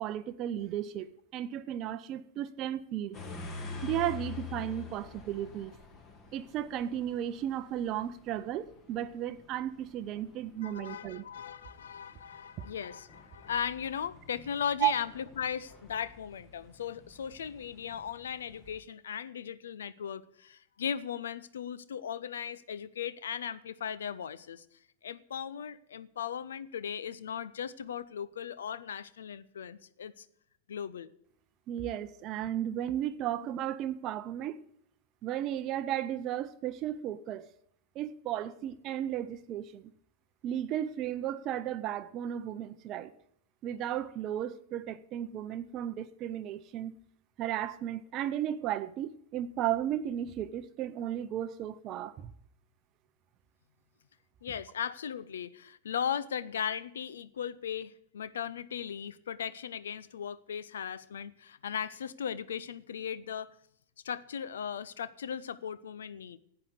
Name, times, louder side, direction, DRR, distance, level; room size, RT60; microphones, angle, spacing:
voice 1, 0.0-3.2 3.8-5.7 6.3-11.2 14.8-14.9 31.7-34.6 35.2-37.5 37.9-39.9 40.4-43.1 43.6-46.9 47.4-52.3, right 11 dB, 35° right, 11 dB, 0.6 m, -34 dB
sound 1, 3.1-18.8, left 5 dB, 30° left, 2.1 m, -48 dB
voice 2, 10.6-24.6 25.0-30.3 30.7-31.1 54.4-63.5 64.0-66.4, left 8 dB, 65° left, 17 dB, 0.6 m, -37 dB
10.5 x 8.7 x 8.2 m, 0.71 s
figure-of-eight pair, 90°, 0 cm